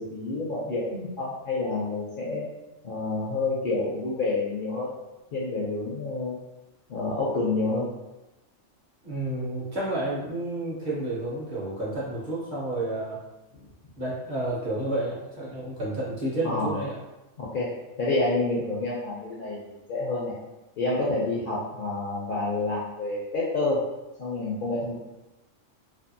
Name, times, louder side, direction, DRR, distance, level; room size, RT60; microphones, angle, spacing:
voice 1, 0.0-2.5 2.8-4.9 5.3-6.4 6.9-7.9 16.4-16.8 17.4-17.7 18.0-20.3 20.8-23.8 24.2-25.0, left 2 dB, 60° left, -5 dB, 0.6 m, -28 dB
voice 2, 9.0-13.2 14.0-17.0, right 1 dB, 50° right, -6 dB, 0.7 m, -30 dB
2.6 x 2.4 x 2.5 m, 0.99 s
omnidirectional pair, 1.3 m